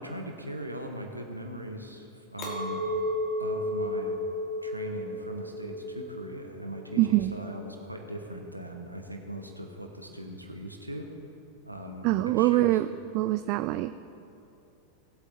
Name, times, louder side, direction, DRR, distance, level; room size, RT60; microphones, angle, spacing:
voice 1, 0.0-2.8 3.4-4.2 4.6-11.1 11.6-12.8, right 1 dB, 85° right, 3 dB, 1.1 m, -39 dB
Chink clink, 2.4-7.8, left 1 dB, 30° left, 2.7 m, -33 dB
voice 2, 7.0-7.4 12.0-12.9 13.1-13.9, right 17 dB, 45° right, 12 dB, 0.3 m, -24 dB
19.0 x 8.1 x 4.1 m, 2.7 s
figure-of-eight pair, 90°, 0 cm